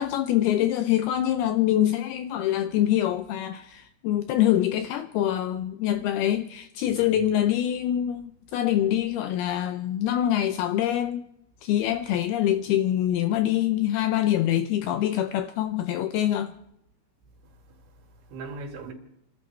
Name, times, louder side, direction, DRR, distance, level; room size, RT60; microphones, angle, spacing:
voice 1, 0.0-11.2 11.6-16.5, left 12 dB, 85° left, 2.2 m, -25 dB
voice 2, 7.0-7.3 17.6-18.9, right 3 dB, 85° right, 4.8 m, -41 dB
29.5 x 12.5 x 3.3 m
omnidirectional pair, 5.1 m